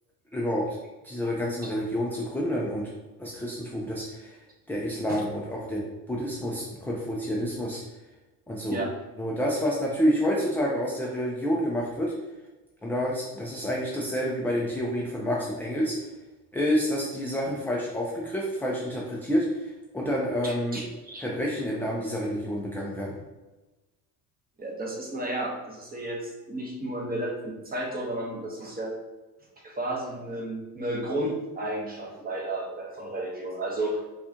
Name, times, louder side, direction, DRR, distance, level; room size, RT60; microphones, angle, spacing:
voice 1, 0.3-0.8 1.0-2.9 3.2-4.4 4.7-7.8 8.5-8.8 9.2-12.1 12.8-16.0 16.5-20.8 21.2-23.2, equal, 5° left, -3 dB, 0.4 m, -28 dB
voice 2, 20.4-21.2 24.6-28.9 29.6-34.0, right 1 dB, 20° right, -1 dB, 1.0 m, -33 dB
4.0 x 2.4 x 2.8 m, 1.1 s
hypercardioid pair, 80°, 45 cm